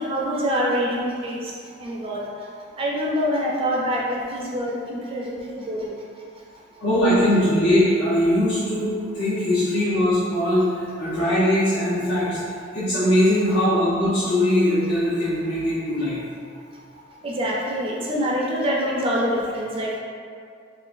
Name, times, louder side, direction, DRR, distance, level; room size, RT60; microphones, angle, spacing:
voice 1, 0.0-1.5 1.8-2.2 2.8-6.0 17.2-20.0, equal, 30° right, -4 dB, 0.4 m, -25 dB
voice 2, 6.8-12.4 12.7-16.2, left 1 dB, 70° left, -12 dB, 0.8 m, -21 dB
3.7 x 2.2 x 2.5 m, 2.3 s
head